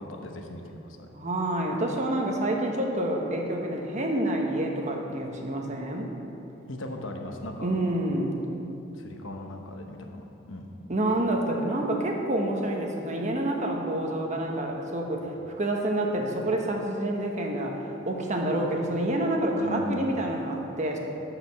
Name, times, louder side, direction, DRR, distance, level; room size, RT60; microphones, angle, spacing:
voice 1, 0.0-1.1 6.7-7.7 8.9-10.7 15.2-15.3 19.5-20.1, left 1 dB, 70° left, 3 dB, 1.1 m, -38 dB
voice 2, 1.1-6.1 7.6-8.4 10.9-15.3 15.6-21.0, right 1 dB, 35° right, 1 dB, 1.2 m, -28 dB
13.0 x 5.1 x 6.2 m, 2.9 s
head